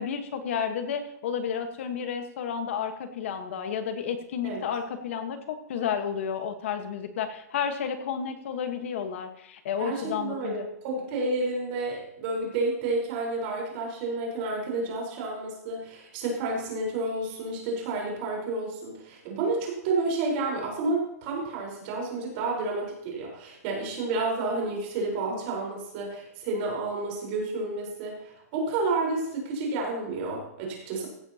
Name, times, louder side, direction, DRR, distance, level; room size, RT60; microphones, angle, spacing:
voice 1, 0.0-10.7, left 7 dB, 50° left, 7 dB, 1.3 m, -31 dB
voice 2, 9.8-31.1, right 3 dB, 35° right, -2 dB, 4.3 m, -30 dB
16.0 x 10.5 x 2.9 m, 0.82 s
hypercardioid pair, 165°, 9 cm